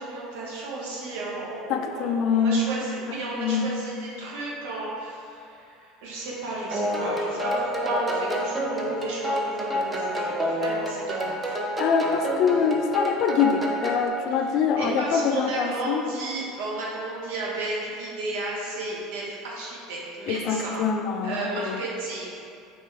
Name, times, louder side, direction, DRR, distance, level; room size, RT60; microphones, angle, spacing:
voice 1, 0.0-11.6 14.5-20.8 21.2-22.4, right 2 dB, 70° right, -5 dB, 1.0 m, -33 dB
voice 2, 1.7-2.6 3.3-3.7 11.8-16.0 20.3-21.8, left 6 dB, 55° left, 5 dB, 0.3 m, -24 dB
sound 1, 6.7-14.1, equal, 20° right, 0.7 m, -28 dB
5.3 x 2.5 x 3.3 m, 2.5 s
hypercardioid pair, 70°, 0 cm